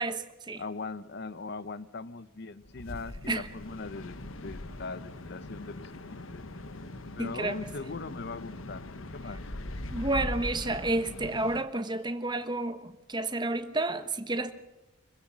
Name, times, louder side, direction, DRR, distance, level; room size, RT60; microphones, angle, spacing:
voice 1, 0.0-0.6 3.3-3.5 7.2-7.6 9.9-14.5, right 2 dB, 20° right, 1.2 m, -31 dB
voice 2, 0.6-6.5 7.2-8.8 9.1-9.4, left 3 dB, 50° left, 0.7 m, -40 dB
sound 1, 2.6-11.6, left 1 dB, 70° left, 1.3 m, -41 dB
25.0 x 16.0 x 7.3 m
head